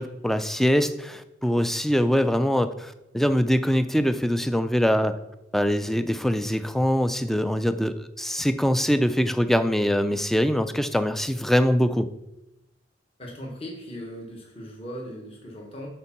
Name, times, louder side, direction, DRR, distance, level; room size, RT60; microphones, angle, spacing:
voice 1, 0.0-5.2 5.5-12.1, equal, ahead, 10 dB, 0.3 m, -23 dB
voice 2, 13.2-15.9, equal, 30° left, -1 dB, 1.3 m, -38 dB
6.9 x 4.4 x 5.8 m, 0.92 s
head